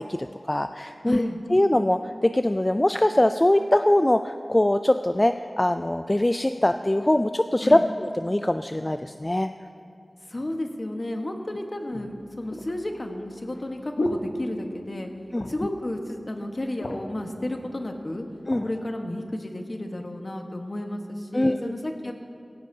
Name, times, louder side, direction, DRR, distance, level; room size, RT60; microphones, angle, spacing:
voice 1, 0.0-9.5 15.3-15.5 18.5-18.6 21.3-21.6, left 1 dB, 25° left, 8 dB, 0.3 m, -22 dB
voice 2, 1.1-1.4 7.6-7.8 10.3-15.1 15.5-18.2 18.6-22.2, left 1 dB, 50° left, 3 dB, 1.2 m, -32 dB
sound 1, 11.0-11.1 11.9-15.0 15.3-15.8 16.1-16.2 16.5-17.2 17.9-18.7 19.3-19.5, left 1 dB, 80° left, 1.0 m, -34 dB
16.5 x 16.0 x 2.8 m, 2.4 s
wide cardioid pair, 55°, 0 cm